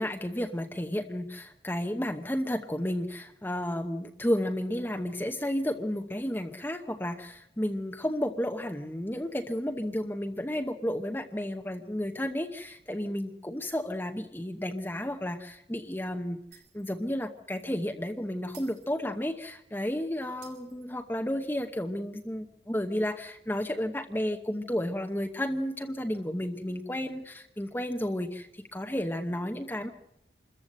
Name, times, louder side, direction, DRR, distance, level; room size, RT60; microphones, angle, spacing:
voice 1, 0.0-16.4 16.7-29.9, left 1 dB, 10° left, 5 dB, 0.9 m, -32 dB
Shatter, 16.5-17.1 17.4-17.5 18.5-19.6 20.4-21.4, right 9 dB, 80° right, 6.0 m, -56 dB
26.5 x 14.5 x 7.7 m, 0.83 s
head